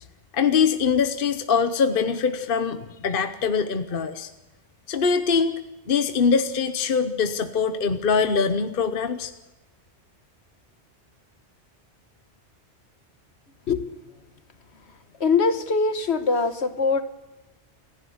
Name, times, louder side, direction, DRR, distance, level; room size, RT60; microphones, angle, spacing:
voice 1, 0.3-4.3 4.9-5.6 5.9-9.3, left 5 dB, 55° left, 10 dB, 1.1 m, -23 dB
voice 2, 15.2-17.0, left 4 dB, 70° left, 10 dB, 1.6 m, -22 dB
28.5 x 11.5 x 8.0 m, 1.0 s
omnidirectional pair, 1.2 m